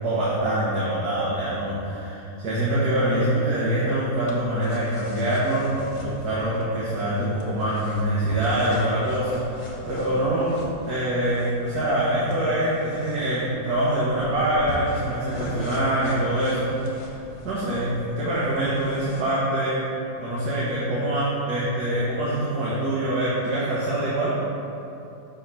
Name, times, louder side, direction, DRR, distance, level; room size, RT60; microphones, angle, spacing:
voice 1, 0.0-17.2 17.4-19.8 20.2-24.4, right 1 dB, 60° right, -8 dB, 1.5 m, -24 dB
sound 1, 3.7-19.2, left 1 dB, 85° left, 1.6 m, -41 dB
6.2 x 3.4 x 5.6 m, 2.9 s
omnidirectional pair, 2.0 m